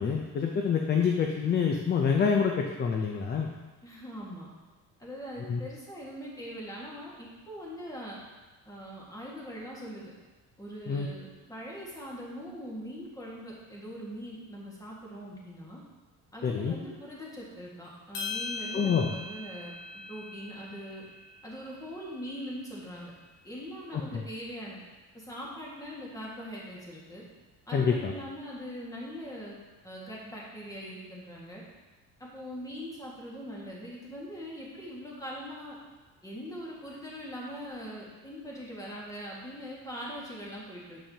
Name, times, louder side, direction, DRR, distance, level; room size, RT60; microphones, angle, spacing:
voice 1, 0.0-3.5 5.4-5.6 10.9-11.1 16.4-16.7 18.7-19.1 24.1-24.2 27.7-28.1, left 6 dB, 30° left, 2 dB, 0.6 m, -27 dB
voice 2, 3.8-4.5 5.0-8.2 8.6-10.1 10.6-15.8 16.3-19.7 20.1-21.0 21.4-23.1 23.4-24.8 25.1-27.2 27.7-29.6 29.8-31.6 32.2-35.7 36.2-41.0, equal, 10° left, -4 dB, 1.7 m, -41 dB
sound 1, 18.1-22.6, left 3 dB, 80° left, 1.3 m, -41 dB
7.2 x 5.6 x 2.8 m, 1.2 s
cardioid pair, 115°, 33 cm